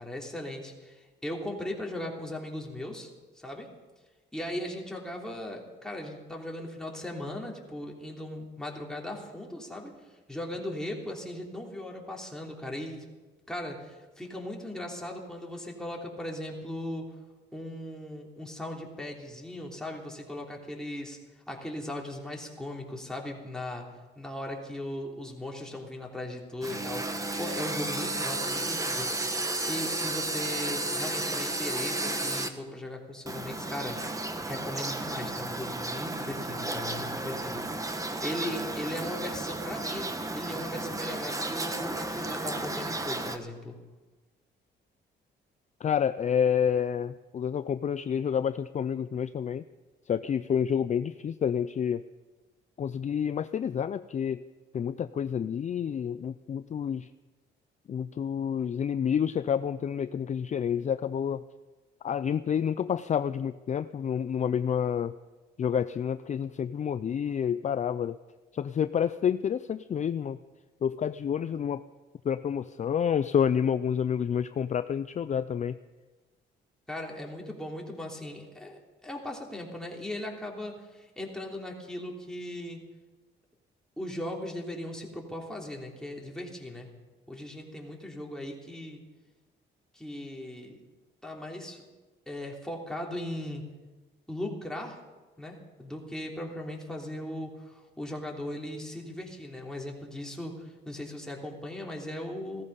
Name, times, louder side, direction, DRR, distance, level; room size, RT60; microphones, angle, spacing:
voice 1, 0.0-3.1 3.3-3.7 4.3-9.9 10.3-13.0 13.5-17.0 17.5-21.2 21.5-27.1 27.4-34.0 34.4-37.7 38.0-43.8 76.9-82.8 84.0-86.9 87.3-89.0 89.9-90.8 91.2-91.8 92.3-93.6 94.3-95.0 95.4-102.6, left 1 dB, 5° left, -1 dB, 3.3 m, -38 dB
sound 1, 26.6-32.5 33.3-43.4, right 2 dB, 15° right, 1.3 m, -33 dB
voice 2, 45.8-49.6 50.1-52.0 52.8-54.4 54.7-57.1 57.9-61.4 62.0-65.1 65.6-68.2 68.5-70.4 70.8-71.8 72.2-75.8, left 8 dB, 35° left, 13 dB, 0.4 m, -29 dB
16.5 x 14.0 x 5.5 m, 1.2 s
cardioid pair, 90°, 20 cm